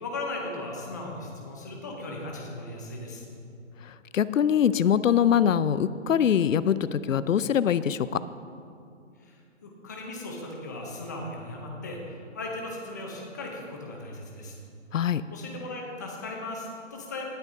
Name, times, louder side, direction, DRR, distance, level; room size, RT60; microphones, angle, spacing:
voice 1, 0.0-3.2 9.2-14.5 15.3-17.2, left 2 dB, 15° left, -1 dB, 0.6 m, -37 dB
voice 2, 4.1-8.1 14.9-15.2, left 9 dB, 80° left, 15 dB, 0.6 m, -23 dB
18.5 x 9.2 x 2.7 m, 2.5 s
hypercardioid pair, 165°, 38 cm